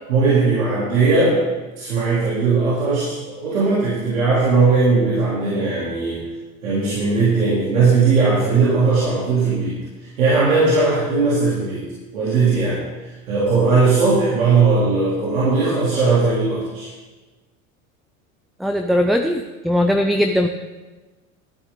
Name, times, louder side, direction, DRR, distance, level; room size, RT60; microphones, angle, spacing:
voice 1, 0.1-1.4 1.8-6.2 6.6-9.8 10.2-11.9 12.1-16.9, right 4 dB, 85° right, -8 dB, 3.4 m, -18 dB
voice 2, 18.6-20.5, left 1 dB, ahead, 5 dB, 0.5 m, -19 dB
13.5 x 10.0 x 3.9 m, 1.2 s
hypercardioid pair, 80°, 40 cm